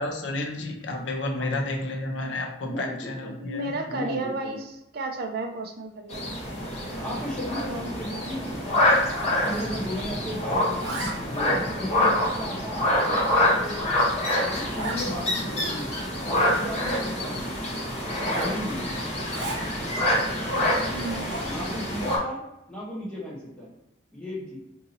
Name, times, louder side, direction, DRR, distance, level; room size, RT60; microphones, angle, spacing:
voice 1, 0.0-3.7, left 2 dB, 70° left, 2 dB, 0.5 m, -31 dB
voice 2, 2.6-3.3 3.9-4.6 6.9-8.9 9.2-13.8 14.3-15.9 16.2-17.5 18.3-18.9 21.4-22.4 22.7-23.7 24.1-24.6, equal, 5° left, -6 dB, 0.9 m, -35 dB
voice 3, 3.4-6.2 20.9-21.3, right 2 dB, 50° right, 4 dB, 0.5 m, -32 dB
sound 1, 6.1-22.2, left 1 dB, 35° left, 0.8 m, -26 dB
Zipper (clothing), 6.7-7.7 8.0-8.3 8.5-10.2 10.5-11.5 12.1-12.2 12.8-12.9 13.3-13.4 13.6-13.7 14.0-14.1 14.7-15.0 15.5-15.6 15.8-17.1 18.1-19.7 20.3-21.7, right 1 dB, 80° right, 0.8 m, -38 dB
2.7 x 2.6 x 4.0 m, 0.87 s
head